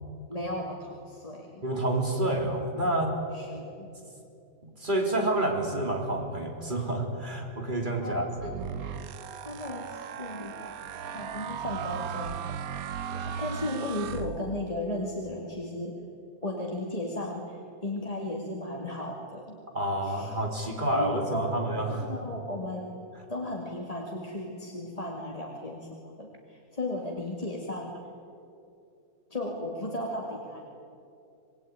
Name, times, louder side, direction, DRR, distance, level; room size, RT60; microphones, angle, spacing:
voice 1, 0.3-1.6 3.3-3.9 8.0-8.5 9.4-10.5 11.1-12.6 12.9-16.0 16.4-19.6 20.0-20.4 20.7-21.6 21.9-23.0 23.3-25.9 26.2-27.9 29.3-30.6, left 1 dB, 25° left, -1 dB, 2.4 m, -35 dB
voice 2, 1.6-3.2 4.8-8.7 19.7-22.0, right 1 dB, 30° right, 1 dB, 4.0 m, -29 dB
sound 1, 8.4-14.8, right 8 dB, 70° right, 1.3 m, -37 dB
26.5 x 21.0 x 9.5 m, 2.7 s
omnidirectional pair, 1.6 m